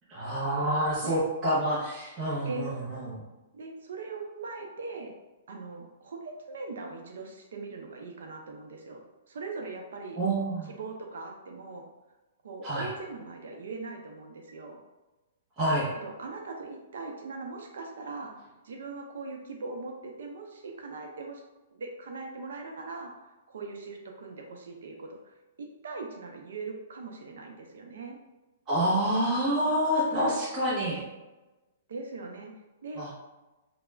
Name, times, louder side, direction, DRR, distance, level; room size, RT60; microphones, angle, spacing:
voice 1, 0.1-3.2 10.2-10.7 12.6-12.9 15.6-15.9 28.7-31.0 33.0-33.1, right 1 dB, 20° right, -10 dB, 0.7 m, -27 dB
voice 2, 3.5-5.1 5.5-9.0 9.3-10.2 10.7-11.8 12.4-14.8 15.9-18.4 18.6-21.4 21.7-28.2 31.9-32.5 32.8-33.1, right 3 dB, 80° right, 2 dB, 0.5 m, -40 dB
2.3 x 2.0 x 3.2 m, 1.1 s
hypercardioid pair, 165°, 0 cm